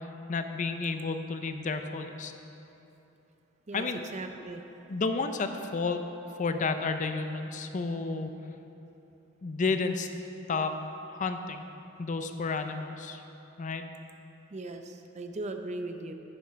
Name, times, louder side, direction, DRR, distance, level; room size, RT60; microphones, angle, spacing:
voice 1, 0.0-2.3 3.7-4.0 4.9-6.0 6.4-8.3 9.4-10.1 10.5-10.8 11.1-11.6 12.0-13.2 13.6-13.9, left 4 dB, 40° left, 7 dB, 0.5 m, -31 dB
voice 2, 4.1-4.6 14.5-16.1, right 2 dB, 35° right, 6 dB, 0.6 m, -38 dB
9.5 x 7.3 x 5.7 m, 3.0 s
head